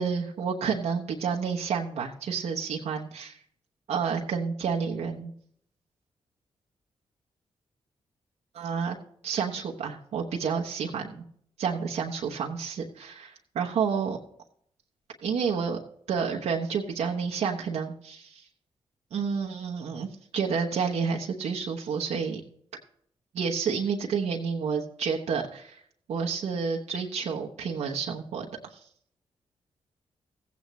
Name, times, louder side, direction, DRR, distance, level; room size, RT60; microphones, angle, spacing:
voice 1, 0.0-3.4 3.9-5.3 8.5-9.0 9.2-11.2 11.6-14.2 15.2-15.8 16.1-18.4 19.1-22.4 23.3-25.8 26.1-28.5 28.7-28.8, right 6 dB, 80° right, -1 dB, 1.1 m, -30 dB
15.5 x 8.5 x 3.1 m, 0.64 s
supercardioid pair, 45°, 11 cm